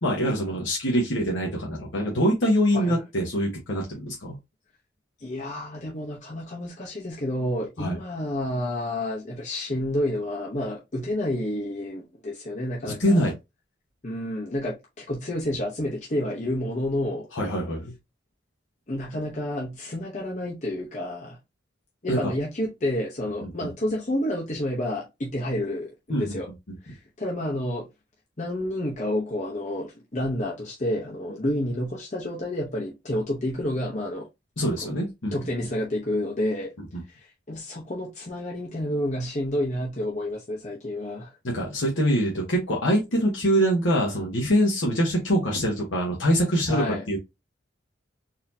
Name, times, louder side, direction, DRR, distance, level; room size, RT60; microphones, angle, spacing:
voice 1, 0.0-4.4 7.8-8.0 12.8-13.3 17.3-17.9 22.1-22.3 23.4-23.5 26.1-26.4 34.6-35.3 41.4-47.2, equal, 90° left, 1.1 m, -24 dB
voice 2, 5.2-13.3 14.0-17.3 18.9-21.4 22.0-26.5 26.8-27.9 28.4-34.3 34.8-34.9 35.3-36.7 37.1-37.2 37.5-41.3 46.7-47.0, left 1 dB, 40° left, 0.8 m, -29 dB
4.1 x 2.8 x 2.7 m
head